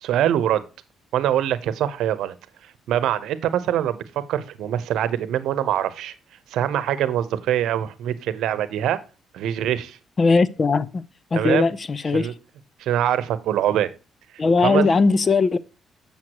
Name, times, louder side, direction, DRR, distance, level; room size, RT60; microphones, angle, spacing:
voice 1, 0.0-0.6 1.1-2.4 2.9-4.0 4.3-6.1 6.5-9.0 9.3-10.0 11.3-11.7 12.1-12.3 12.8-13.9 14.6-14.8, right 11 dB, 80° right, 0.9 m, -23 dB
voice 2, 10.2-11.0 11.3-12.3 14.4-15.6, left 4 dB, 35° left, 0.6 m, -19 dB
7.7 x 7.0 x 2.9 m
cardioid pair, 90°, 0 cm